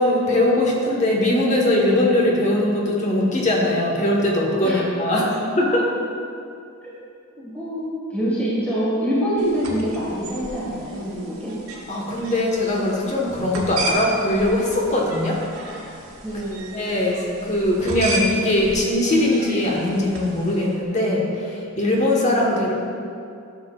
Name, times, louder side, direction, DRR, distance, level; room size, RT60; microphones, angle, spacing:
voice 1, 0.0-5.8 11.9-15.4 16.7-22.7, left 1 dB, 35° left, -3 dB, 1.2 m, -21 dB
voice 2, 7.4-11.6 16.2-16.7, equal, 5° left, -10 dB, 1.6 m, -25 dB
sound 1, 9.4-20.7, right 1 dB, 85° right, 1.3 m, -33 dB
11.5 x 7.0 x 2.4 m, 2.5 s
head